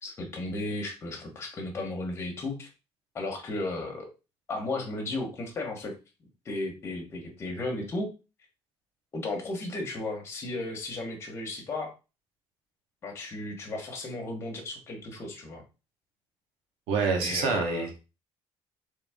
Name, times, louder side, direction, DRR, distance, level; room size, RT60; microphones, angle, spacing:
voice 1, 0.0-2.7 3.1-4.1 4.5-5.9 6.4-8.1 9.1-11.9 13.0-15.6 17.2-18.0, left 2 dB, 25° left, 1 dB, 1.2 m, -34 dB
voice 2, 16.9-18.0, right 5 dB, 75° right, 2 dB, 1.3 m, -27 dB
3.9 x 3.5 x 3.6 m, 0.30 s
cardioid pair, 180°, 10 cm